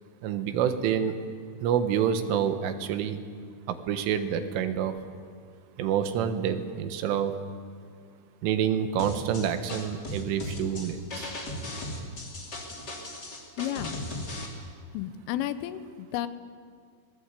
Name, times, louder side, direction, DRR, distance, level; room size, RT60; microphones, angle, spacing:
voice 1, 0.2-1.1 1.6-3.2 3.7-4.9 5.8-7.3 8.4-11.3, right 8 dB, 80° right, 9 dB, 3.8 m, -27 dB
sound 1, 9.0-14.5, left 1 dB, 25° left, 3.1 m, -37 dB
voice 2, 13.6-14.0 14.9-16.3, left 12 dB, 90° left, 12 dB, 3.6 m, -32 dB
26.5 x 19.5 x 8.3 m, 2.1 s
omnidirectional pair, 5.6 m